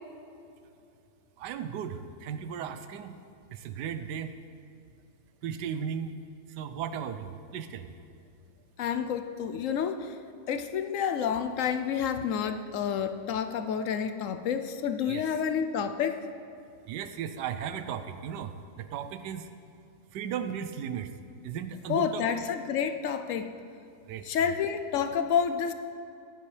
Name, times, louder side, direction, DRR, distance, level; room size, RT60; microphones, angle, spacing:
voice 1, 1.4-3.1 3.5-4.3 5.4-6.1 6.6-7.9 15.1-15.2 16.9-19.5 20.1-21.1 21.4-22.3 24.1-24.5, right 8 dB, 90° right, 10 dB, 1.2 m, -36 dB
voice 2, 8.8-10.1 10.5-16.2 21.9-23.5 24.2-25.7, left 7 dB, 70° left, 9 dB, 0.8 m, -29 dB
15.0 x 10.0 x 3.3 m, 2.6 s
omnidirectional pair, 1.8 m